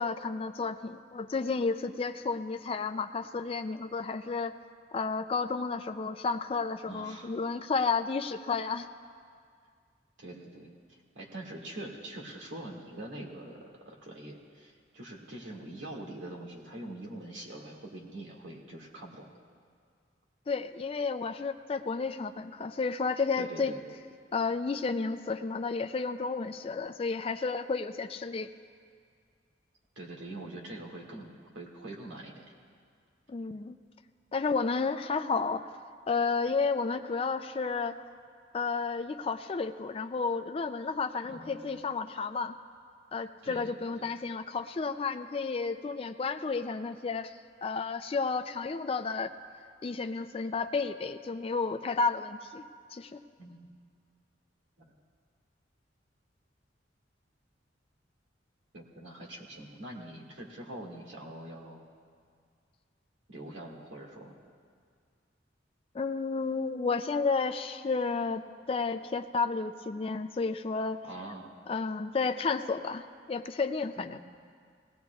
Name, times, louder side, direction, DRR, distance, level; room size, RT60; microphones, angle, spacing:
voice 1, 0.0-4.5 4.9-8.9 20.5-23.7 24.3-28.5 33.3-33.8 34.3-35.6 36.1-38.0 38.5-42.5 43.1-47.3 47.6-49.3 49.8-52.6 52.9-53.2 65.9-71.0 71.7-73.0 73.3-74.2, left 4 dB, 30° left, 8 dB, 0.3 m, -32 dB
voice 2, 6.9-7.4 10.2-19.3 23.4-23.8 30.0-32.5 41.3-41.8 43.4-44.2 53.4-53.6 54.8-54.9 58.7-61.8 63.3-64.4 71.1-71.5 74.0-74.2, right 1 dB, 85° right, -1 dB, 2.0 m, -44 dB
20.0 x 17.0 x 2.3 m, 2.1 s
head